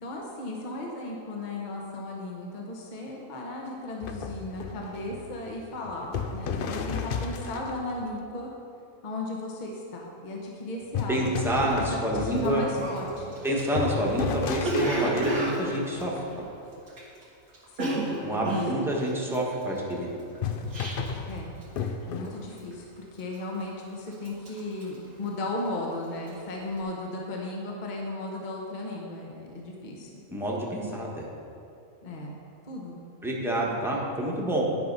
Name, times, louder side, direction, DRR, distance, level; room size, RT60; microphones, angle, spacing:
voice 1, 0.0-8.5 9.0-11.2 11.8-13.4 17.7-18.0 18.3-18.5 21.3-21.5 22.1-30.1 32.0-32.4 32.7-33.0, left 2 dB, 35° left, -1 dB, 1.1 m, -36 dB
sound 1, 4.0-8.0 10.9-16.7 20.3-22.6, left 5 dB, 60° left, 0.5 m, -34 dB
voice 2, 11.1-12.6 13.4-16.4 18.2-20.1 30.3-31.3 33.2-34.7, right 1 dB, ahead, -3 dB, 1.2 m, -28 dB
Cough, 12.4-12.5 12.8-17.2 17.5-21.3 21.6-22.0 22.2-22.7 23.2-23.8 24.1-25.8 26.1-26.4, right 2 dB, 90° right, 2.0 m, -32 dB
10.5 x 5.6 x 5.4 m, 2.6 s
omnidirectional pair, 1.5 m